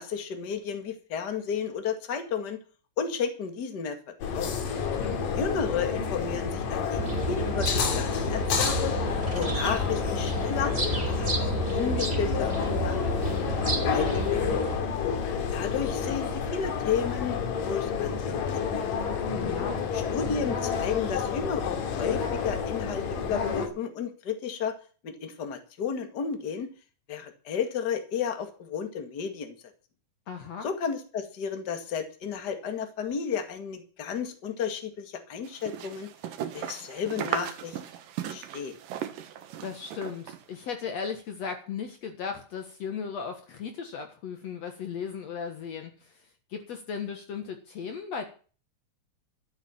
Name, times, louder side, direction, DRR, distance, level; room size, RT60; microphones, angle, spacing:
voice 1, 0.0-2.6 3.0-4.0 4.3-4.5 5.3-9.0 9.3-13.0 13.9-14.1 14.3-14.5 15.5-18.8 19.9-24.7 25.0-26.7 27.1-29.5 30.6-36.1 36.5-37.8 38.3-38.7, left 7 dB, 35° left, 6 dB, 2.2 m, -32 dB
sound 1, 4.2-23.7, left 6 dB, 85° left, 3.7 m, -30 dB
voice 2, 4.8-5.3 19.3-19.9 30.3-30.7 39.6-48.3, left 6 dB, 60° left, 6 dB, 2.4 m, -36 dB
sound 2, 7.0-14.8, right 2 dB, 20° right, 2.5 m, -31 dB
sound 3, 35.4-40.4, right 10 dB, 90° right, 3.0 m, -36 dB
13.0 x 8.9 x 7.4 m, 0.39 s
omnidirectional pair, 3.8 m